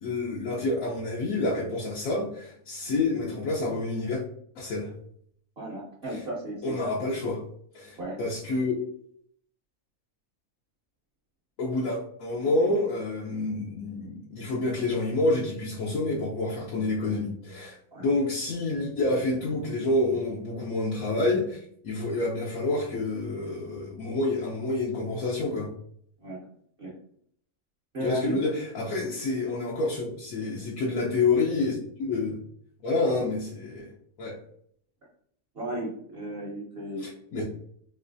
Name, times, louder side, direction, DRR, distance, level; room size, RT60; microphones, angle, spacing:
voice 1, 0.0-4.2 4.6-4.9 6.1-6.2 6.6-7.4 7.7-8.8 11.6-25.7 28.0-32.4 32.8-33.9 34.2-34.4 37.0-37.4, left 2 dB, 75° left, -4 dB, 1.1 m, -28 dB
voice 2, 5.6-6.9 8.0-8.2 17.9-18.1 26.2-26.4 26.8-26.9 27.9-28.4 29.0-29.2 35.5-37.0 37.4-37.5, right 1 dB, 50° right, -6 dB, 0.9 m, -34 dB
3.2 x 3.0 x 2.5 m, 0.65 s
omnidirectional pair, 1.5 m